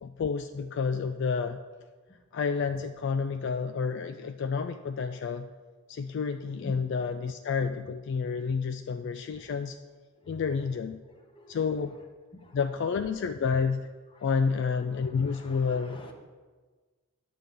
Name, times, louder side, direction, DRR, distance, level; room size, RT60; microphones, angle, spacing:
voice 1, 0.0-1.6 2.3-5.5 5.9-9.8 10.3-11.0 11.5-12.0 12.5-13.9 14.2-16.0, left 5 dB, 55° left, 8 dB, 0.3 m, -30 dB
voice 2, 10.2-10.8 11.1-11.7 12.3-12.6 14.1-14.3 14.9-16.1, left 1 dB, 25° left, 3 dB, 0.9 m, -48 dB
9.3 x 3.7 x 7.0 m, 1.4 s
head